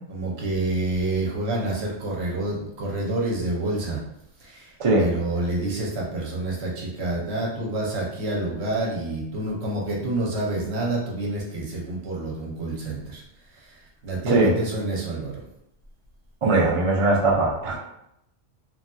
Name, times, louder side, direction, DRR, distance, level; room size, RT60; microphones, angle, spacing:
voice 1, 0.1-4.0 4.4-13.2 13.5-15.4, right 2 dB, 65° right, -3 dB, 1.0 m, -28 dB
voice 2, 16.4-17.8, right 2 dB, 40° right, -3 dB, 0.4 m, -20 dB
3.1 x 2.6 x 2.3 m, 0.78 s
omnidirectional pair, 1.3 m